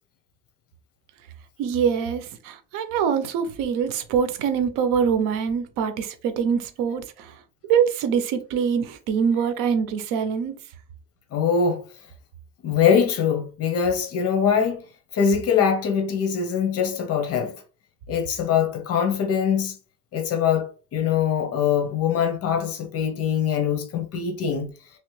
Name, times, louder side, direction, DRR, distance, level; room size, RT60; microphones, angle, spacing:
voice 1, 1.6-7.3 7.6-10.6, right 7 dB, 85° right, 0.8 m, -24 dB
voice 2, 11.3-11.8 12.6-14.9 15.1-17.5 18.1-19.8 20.1-24.7, left 7 dB, 50° left, 0.9 m, -23 dB
3.1 x 3.1 x 3.2 m
cardioid pair, 150°, 32 cm